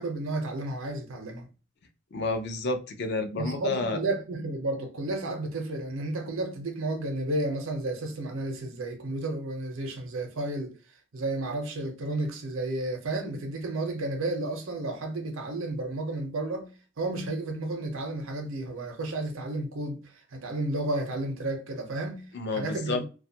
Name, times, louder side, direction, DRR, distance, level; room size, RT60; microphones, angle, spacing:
voice 1, 0.0-1.5 3.4-10.7 11.1-16.7 17.0-20.0 20.3-23.1, right 2 dB, 85° right, 0.6 m, -32 dB
voice 2, 2.1-4.0 22.3-23.0, left 3 dB, 55° left, 0.4 m, -30 dB
2.5 x 2.3 x 2.7 m
head